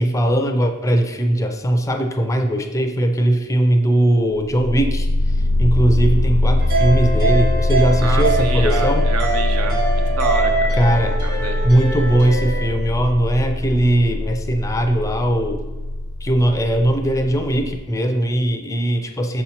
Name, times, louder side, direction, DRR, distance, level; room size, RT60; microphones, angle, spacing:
voice 1, 0.0-9.1 10.7-11.2 11.6-15.6 16.2-19.4, right 1 dB, 15° left, 5 dB, 0.4 m, -19 dB
sound 1, 4.4-17.8, left 1 dB, 90° left, 0.5 m, -21 dB
sound 2, 6.6-12.7, right 3 dB, 45° right, 1.2 m, -24 dB
voice 2, 8.0-9.8 10.1-10.8 11.2-11.6, right 4 dB, 75° right, 6 dB, 0.7 m, -28 dB
6.2 x 2.8 x 5.6 m, 1.2 s
head